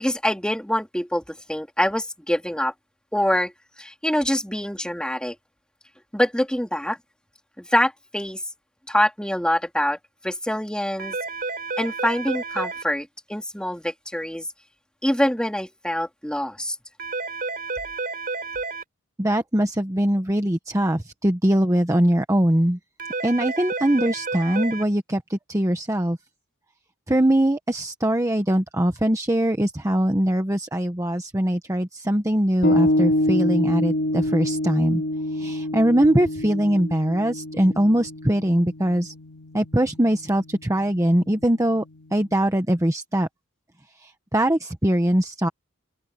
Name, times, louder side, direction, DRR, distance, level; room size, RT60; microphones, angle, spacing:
voice 1, 0.0-2.7 3.1-3.5 3.8-5.3 6.1-7.0 7.6-8.4 8.9-10.0 10.2-11.2 11.8-14.4 15.0-16.8, left 1 dB, 5° left, 3.8 m, -25 dB
sound 1, 11.0-12.8 17.0-18.8 23.0-24.8, right 4 dB, 45° right, 3.8 m, -30 dB
voice 2, 19.2-22.8 23.2-26.2 27.1-35.0 35.3-39.1 39.5-41.8 42.1-43.3 44.0-45.5, right 1 dB, 15° right, 1.1 m, -22 dB
sound 2, 32.6-42.3, left 1 dB, 55° left, 5.3 m, -27 dB
head